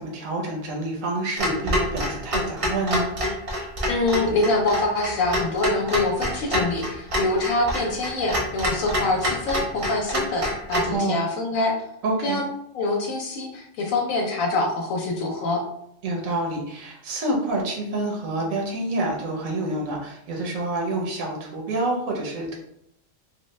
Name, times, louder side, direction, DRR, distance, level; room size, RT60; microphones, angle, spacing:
voice 1, 0.0-3.1 10.9-11.2 12.0-12.4 16.0-22.5, right 2 dB, 80° right, -1 dB, 1.2 m, -27 dB
Clock, 1.4-10.9, equal, 50° right, 0.4 m, -27 dB
voice 2, 3.5-11.7 12.2-12.5 12.7-15.6, left 2 dB, 85° left, 0 dB, 1.0 m, -25 dB
3.2 x 2.2 x 3.1 m, 0.74 s
omnidirectional pair, 1.4 m